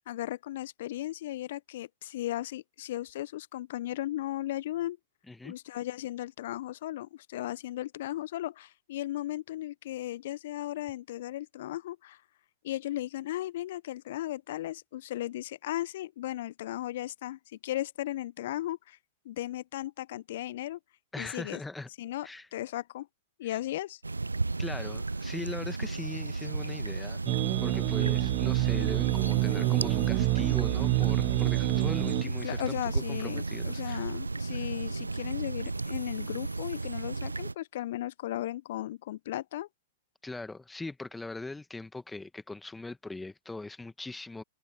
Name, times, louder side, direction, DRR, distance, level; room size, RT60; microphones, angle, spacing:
voice 1, 0.0-5.0 5.4-12.2 12.6-19.0 19.2-20.8 21.2-21.6 22.0-23.1 23.4-24.0 32.2-39.7, left 14 dB, 55° left, 1.0 m, -36 dB
voice 2, 21.1-21.9 22.2-22.5 23.4-23.6 24.6-27.2 27.6-34.0 40.2-44.4, left 3 dB, 5° left, 1.6 m, -40 dB
sound 1, 24.0-37.5, right 3 dB, 85° right, 0.4 m, -34 dB
sound 2, 27.3-32.2, right 27 dB, 40° right, 0.8 m, -27 dB
sound 3, 29.1-30.3 32.9-34.1 35.7-37.0, left 6 dB, 70° left, 3.1 m, -56 dB
figure-of-eight pair, 105°, 0 cm